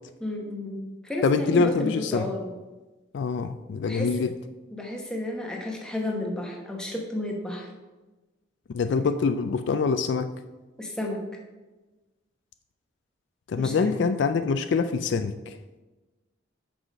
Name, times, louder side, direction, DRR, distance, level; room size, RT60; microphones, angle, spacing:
voice 1, 0.2-2.5 3.8-4.1 4.7-7.7 10.8-11.2 13.6-14.0, left 1 dB, 5° left, 0 dB, 0.9 m, -32 dB
voice 2, 1.2-2.3 3.1-4.3 8.7-10.3 13.5-15.5, left 4 dB, 65° left, 10 dB, 0.3 m, -25 dB
6.1 x 4.9 x 5.2 m, 1.2 s
head